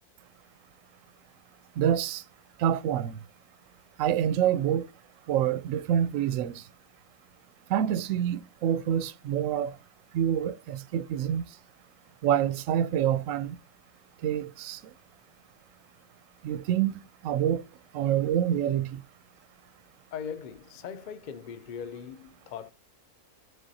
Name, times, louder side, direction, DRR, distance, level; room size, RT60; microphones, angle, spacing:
voice 1, 1.8-2.2 2.6-3.1 4.0-4.9 5.3-6.6 7.7-9.7 10.1-11.5 12.2-13.6 14.2-14.8 16.4-17.6 17.9-19.0, right 10 dB, 70° right, 0.9 m, -27 dB
voice 2, 20.1-22.7, left 7 dB, 55° left, 0.5 m, -39 dB
10.5 x 3.7 x 2.7 m
omnidirectional pair, 1.5 m